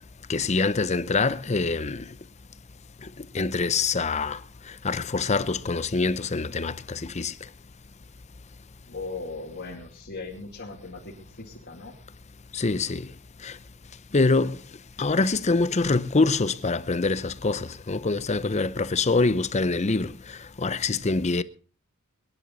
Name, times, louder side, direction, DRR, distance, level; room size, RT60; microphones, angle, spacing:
voice 1, 0.3-2.1 3.0-3.1 3.3-4.4 4.7-7.3 12.5-13.1 13.4-13.6 14.1-14.6 15.0-21.4, left 3 dB, 30° left, 0.6 m, -25 dB
voice 2, 8.9-12.0 14.4-14.5, left 3 dB, 55° left, 2.6 m, -38 dB
23.0 x 11.0 x 4.0 m
head